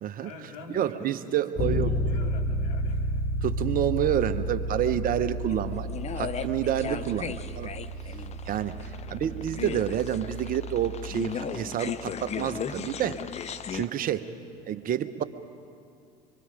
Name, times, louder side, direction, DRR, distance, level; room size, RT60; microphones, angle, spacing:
voice 1, 0.1-1.4 1.6-3.3 8.4-9.3 14.0-14.4, left 3 dB, 75° left, 0 dB, 2.9 m, -46 dB
voice 2, 0.7-1.9 3.4-5.9 6.1-7.7 8.5-8.8 9.1-13.2 13.7-14.3 14.7-15.2, right 10 dB, 45° right, 12 dB, 0.9 m, -28 dB
Bass guitar, 1.6-11.4, equal, 50° left, 2.1 m, -32 dB
sound 1, 5.5-13.9, left 7 dB, 35° left, 0.9 m, -37 dB
25.0 x 24.0 x 5.2 m, 2.4 s
hypercardioid pair, 70°, 20 cm